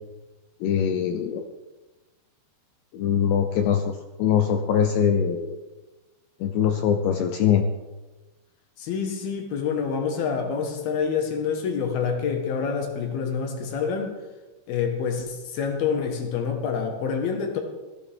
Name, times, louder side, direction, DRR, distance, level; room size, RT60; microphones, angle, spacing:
voice 1, 0.6-1.4 2.9-5.6 6.4-7.6, left 8 dB, 80° left, 6 dB, 2.6 m, -22 dB
voice 2, 8.8-14.1 14.7-17.6, left 6 dB, 65° left, 4 dB, 2.8 m, -27 dB
17.0 x 14.5 x 3.6 m, 1.2 s
omnidirectional pair, 5.8 m